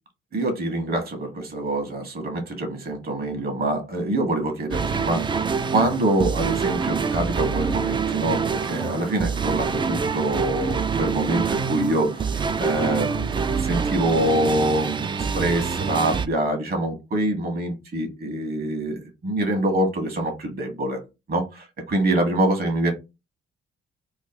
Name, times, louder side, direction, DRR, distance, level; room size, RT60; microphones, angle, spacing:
voice 1, 0.3-5.3 5.7-21.0 21.3-22.9, right 1 dB, 50° right, 1.4 m, -25 dB
sound 1, 4.7-16.3, right 5 dB, 25° right, 0.3 m, -26 dB
3.1 x 2.1 x 3.6 m
cardioid pair, 90°, 20 cm